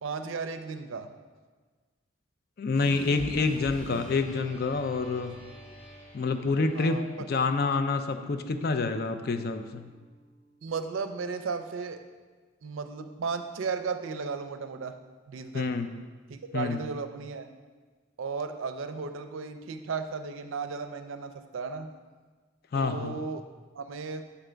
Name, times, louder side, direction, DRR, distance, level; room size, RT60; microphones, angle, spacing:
voice 1, 0.0-1.1 6.7-7.1 10.6-12.0 12.6-14.9 15.3-15.7 16.3-17.5 18.2-21.9 22.7-23.4 23.7-24.2, right 5 dB, 85° right, 8 dB, 0.5 m, -35 dB
voice 2, 2.6-5.4 6.1-7.0 7.3-9.9 15.5-15.9 16.5-16.8 22.7-23.2, left 4 dB, 50° left, 8 dB, 0.4 m, -27 dB
sound 1, 2.7-11.1, equal, 5° left, 1.6 m, -48 dB
6.9 x 3.3 x 5.0 m, 1.4 s
head